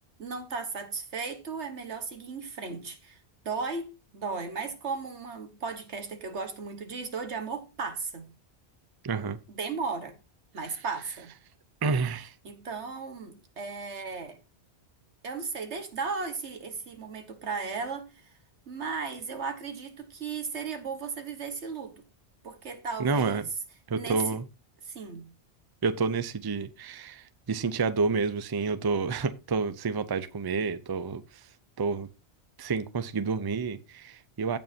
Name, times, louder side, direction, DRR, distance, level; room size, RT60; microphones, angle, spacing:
voice 1, 0.2-3.9 4.1-8.3 9.5-10.1 10.5-11.3 12.4-14.4 15.2-18.4 18.7-22.0 22.4-23.5 24.0-24.4 24.8-25.3, right 4 dB, 90° right, 1.7 m, -35 dB
voice 2, 9.0-9.4 11.8-12.3 23.0-23.4 23.9-24.4 25.8-31.4 31.8-32.1 32.6-34.6, right 4 dB, 30° right, 0.5 m, -29 dB
16.0 x 5.4 x 2.7 m
omnidirectional pair, 1.1 m